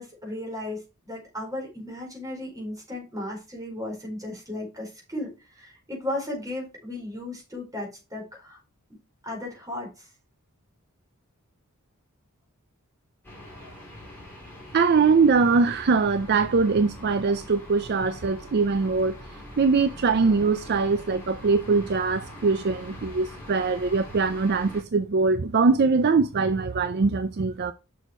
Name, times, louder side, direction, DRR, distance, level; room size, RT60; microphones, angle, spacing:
voice 1, 0.0-8.6 9.2-10.1, left 1 dB, 15° right, 4.5 m, -35 dB
sound 1, 13.2-24.8, left 1 dB, 10° left, 3.6 m, -43 dB
voice 2, 14.7-19.2 19.6-27.7, right 4 dB, 50° right, 0.5 m, -22 dB
6.6 x 6.5 x 4.4 m
head